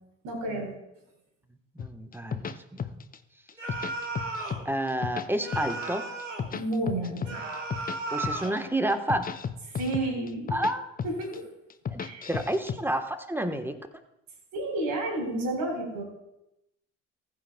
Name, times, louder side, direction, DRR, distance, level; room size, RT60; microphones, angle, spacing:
voice 1, 0.2-0.7 6.5-7.4 9.7-10.6 11.0-11.4 12.0-12.3 14.5-16.0, right 2 dB, 60° right, 0 dB, 4.4 m, -31 dB
voice 2, 1.7-3.0 3.8-3.9 4.6-6.1 8.1-9.3 10.5-10.8 11.9-12.0 12.3-13.8, right 1 dB, 5° right, 7 dB, 1.2 m, -30 dB
sound 1, 1.8-3.2 3.5-4.6 4.9-5.9 6.2-8.0 8.2-8.6 8.9-10.7 11.0-11.4 11.7-12.8, left 7 dB, 25° left, 0.7 m, -33 dB
sound 2, 3.6-4.6 5.4-6.5 7.2-8.6, right 2 dB, 90° right, 1.3 m, -35 dB
19.5 x 9.2 x 2.3 m, 0.89 s
figure-of-eight pair, 50°, 37 cm